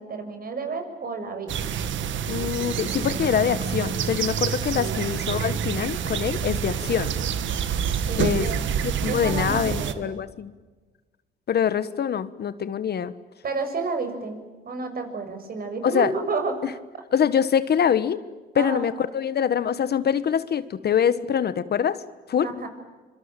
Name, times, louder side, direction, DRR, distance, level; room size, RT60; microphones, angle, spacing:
voice 1, 0.0-1.5 4.9-5.1 7.8-8.6 9.0-10.2 13.4-16.6 18.5-18.8 22.4-22.7, right 4 dB, 50° right, 7 dB, 6.6 m, -31 dB
sound 1, 1.5-9.9, right 7 dB, 70° right, 1.8 m, -27 dB
voice 2, 2.3-7.1 8.2-8.5 8.8-10.5 11.5-13.1 15.8-16.1 17.1-18.2 18.5-22.0 22.3-22.5, left 8 dB, 55° left, 14 dB, 1.4 m, -24 dB
25.5 x 25.0 x 9.1 m, 1.3 s
cardioid pair, 90°, 20 cm